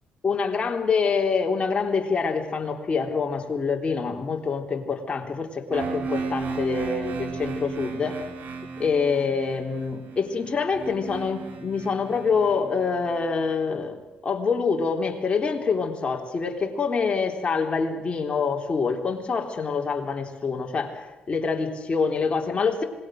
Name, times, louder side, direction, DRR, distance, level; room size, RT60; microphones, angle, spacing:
voice 1, 0.2-8.2 8.8-22.8, left 5 dB, 35° left, 2 dB, 3.7 m, -26 dB
sound 1, 5.7-13.5, right 4 dB, 60° right, 2.8 m, -35 dB
26.5 x 21.0 x 6.6 m, 1.1 s
cardioid pair, 105°, 3 cm